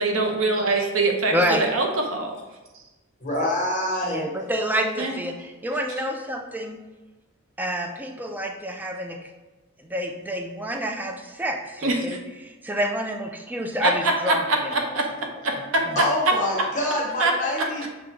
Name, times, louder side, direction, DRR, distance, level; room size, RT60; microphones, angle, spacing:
voice 1, 0.0-2.3 5.0-5.2 11.8-12.2 13.8-15.1 15.4-16.7 17.2-17.9, right 2 dB, 85° right, 2 dB, 0.7 m, -24 dB
voice 2, 1.3-1.7 4.0-6.8 7.6-9.2 9.8-14.4 14.8-14.9 15.9-16.0, equal, 10° right, 4 dB, 0.3 m, -28 dB
voice 3, 3.2-4.3 16.0-17.8, left 1 dB, 40° left, -4 dB, 1.0 m, -26 dB
6.2 x 2.2 x 2.9 m, 1.1 s
head